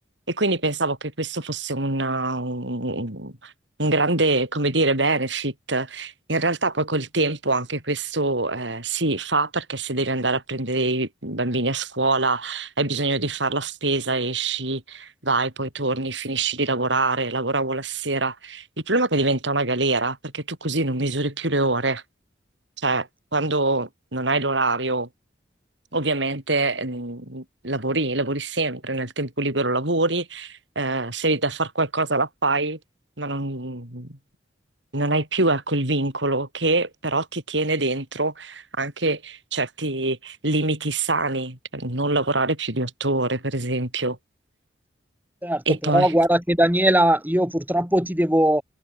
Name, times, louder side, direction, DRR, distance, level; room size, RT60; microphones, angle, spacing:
voice 1, 0.3-3.5 3.8-22.0 22.8-25.1 25.9-32.8 33.2-34.2 34.9-44.2 45.7-46.1, right 2 dB, 80° right, 6.7 m, -25 dB
voice 2, 45.4-48.6, right 1 dB, 10° right, 4.5 m, -20 dB
head